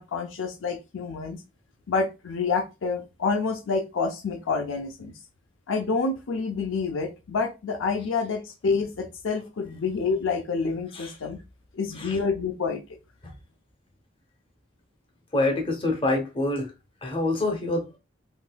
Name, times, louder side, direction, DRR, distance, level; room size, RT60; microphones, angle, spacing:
voice 1, 0.0-1.4 1.9-5.1 5.7-11.4 11.7-13.0, left 4 dB, 70° left, 0.5 m, -28 dB
voice 2, 15.3-16.7 17.0-18.0, left 2 dB, 25° left, 0.7 m, -26 dB
3.7 x 2.5 x 2.2 m
head